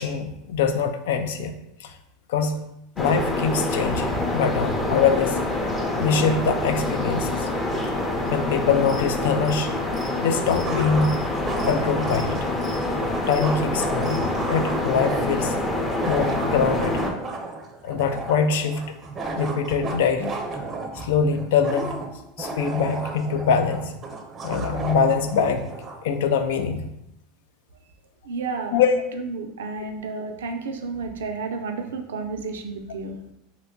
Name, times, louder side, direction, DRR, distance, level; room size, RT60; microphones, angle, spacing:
voice 1, 0.0-1.5 1.8-2.0 2.3-2.6 3.0-5.4 6.0-7.5 8.3-9.7 10.2-11.2 11.6-12.5 13.3-15.6 16.0-17.0 17.8-18.8 19.3-20.4 21.0-22.0 22.4-23.9 24.4-25.7 26.0-26.9 28.7-28.9, left 6 dB, 80° left, 7 dB, 0.3 m, -23 dB
sound 1, 3.0-17.1, left 2 dB, 15° left, 0.6 m, -26 dB
sound 2, 8.8-9.1 9.4-14.2, left 1 dB, 50° left, 0.8 m, -44 dB
sound 3, 9.7-9.8 10.6-26.0, right 3 dB, 30° right, 0.5 m, -34 dB
voice 2, 28.2-28.8 29.2-33.2, right 4 dB, 90° right, 5 dB, 0.4 m, -31 dB
2.9 x 2.2 x 3.7 m, 0.82 s
hypercardioid pair, 105°, 0 cm